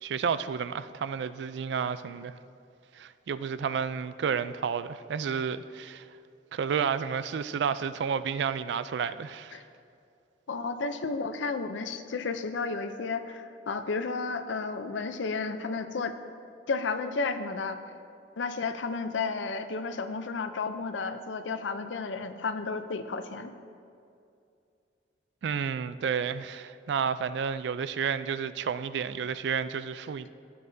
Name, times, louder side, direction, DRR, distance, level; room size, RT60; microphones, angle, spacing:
voice 1, 0.0-2.4 2.9-6.1 6.5-9.6 25.4-30.3, right 6 dB, 65° right, 0.3 m, -31 dB
voice 2, 10.5-16.1 16.7-17.8 18.4-23.5, left 4 dB, 80° left, 0.5 m, -32 dB
14.0 x 8.5 x 2.7 m
head